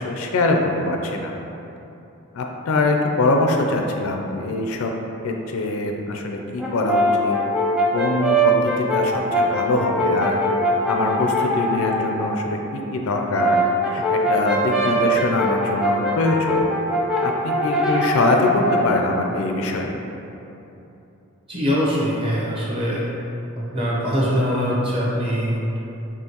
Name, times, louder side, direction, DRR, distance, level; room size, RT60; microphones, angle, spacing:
voice 1, 0.0-1.3 2.3-4.9 5.2-7.4 7.9-10.4 10.9-13.6 13.9-16.7 17.2-19.9, left 2 dB, 70° left, 2 dB, 0.4 m, -23 dB
Brass instrument, 6.6-12.2 13.1-19.0, equal, 5° right, 0.4 m, -22 dB
voice 2, 21.5-23.0 23.6-25.8, equal, 25° right, -7 dB, 0.8 m, -22 dB
4.4 x 2.9 x 2.9 m, 2.9 s
head